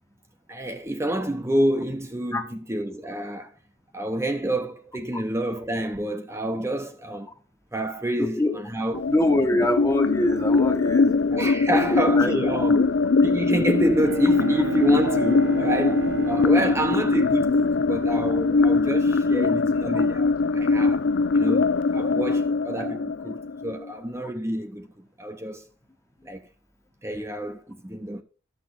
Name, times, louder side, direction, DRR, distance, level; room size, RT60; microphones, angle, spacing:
voice 1, 0.5-3.5 3.9-7.3 7.7-9.0 9.5-9.7 11.3-12.8 13.2-21.1 21.3-25.6 26.2-26.5 27.0-28.2, right 1 dB, 15° right, 0.8 m, -28 dB
voice 2, 8.2-8.6 9.1-11.5 11.7-12.3 12.8-12.9 19.9-20.1, left 1 dB, 15° left, 1.1 m, -24 dB
sound 1, 8.9-23.9, left 3 dB, 70° left, 0.5 m, -22 dB
Bowed string instrument, 13.9-18.5, right 7 dB, 65° right, 1.2 m, -33 dB
13.0 x 6.5 x 4.1 m
head